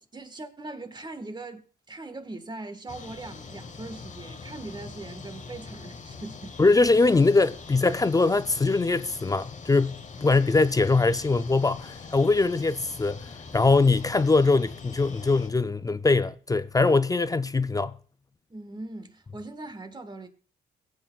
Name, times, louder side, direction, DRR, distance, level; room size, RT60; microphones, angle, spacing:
voice 1, 0.1-6.5 18.5-20.3, right 2 dB, 20° right, 1.5 m, -40 dB
sound 1, 2.9-15.5, left 4 dB, 40° left, 1.2 m, -43 dB
voice 2, 6.6-17.9, left 3 dB, 20° left, 0.4 m, -22 dB
21.0 x 8.2 x 2.4 m
cardioid pair, 90°, 20 cm